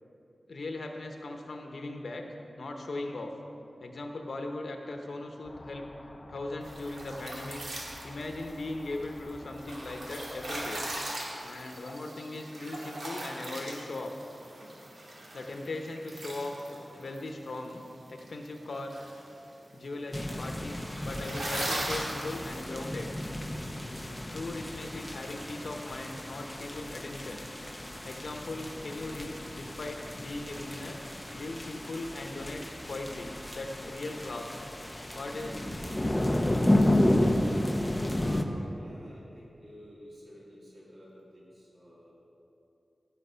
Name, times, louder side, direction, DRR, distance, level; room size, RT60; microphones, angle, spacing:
voice 1, 0.5-2.2 2.6-3.3 3.8-5.9 6.3-7.6 8.0-10.8 11.4-14.1 15.3-16.6 17.0-17.8 18.1-18.9 19.7-23.1 24.3-27.4 28.0-31.0 31.3-34.7 35.1-35.7, left 2 dB, 70° left, 3 dB, 0.9 m, -38 dB
sound 1, 5.4-11.0, left 2 dB, 40° left, 0.6 m, -50 dB
sound 2, 6.6-22.6, right 1 dB, 75° right, 2.6 m, -40 dB
sound 3, 20.1-38.4, left 1 dB, 15° left, 0.7 m, -32 dB
voice 2, 38.0-42.1, equal, 50° right, -7 dB, 2.8 m, -50 dB
17.0 x 6.0 x 5.6 m, 2.7 s
wide cardioid pair, 90°, 0 cm